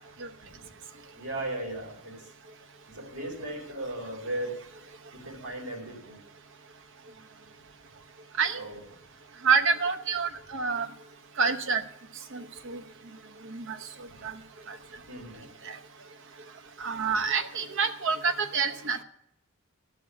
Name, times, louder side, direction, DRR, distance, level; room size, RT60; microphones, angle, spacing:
voice 1, 1.1-2.3 2.9-4.5 5.1-6.2 8.6-8.8 14.1-14.2 15.1-15.4, right 1 dB, 80° right, -1 dB, 4.1 m, -37 dB
voice 2, 9.4-10.9 11.4-11.8 12.3-12.8 13.4-13.8 14.2-14.4 14.7-14.8 15.6-15.8 16.8-19.0, right 5 dB, 60° right, 9 dB, 0.8 m, -27 dB
13.0 x 6.1 x 8.0 m, 0.78 s
head